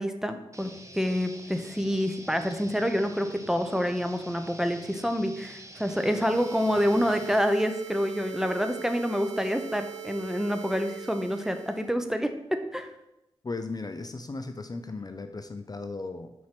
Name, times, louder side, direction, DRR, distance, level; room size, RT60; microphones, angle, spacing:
voice 1, 0.0-12.9, equal, 5° right, 7 dB, 0.7 m, -27 dB
sound 1, 0.5-7.4, right 1 dB, 25° right, 1.1 m, -47 dB
sound 2, 5.8-12.0, right 11 dB, 80° right, 0.5 m, -42 dB
voice 2, 13.4-16.3, left 3 dB, 35° left, 8 dB, 0.5 m, -36 dB
4.6 x 4.3 x 5.9 m, 0.90 s
cardioid pair, 40°, 11 cm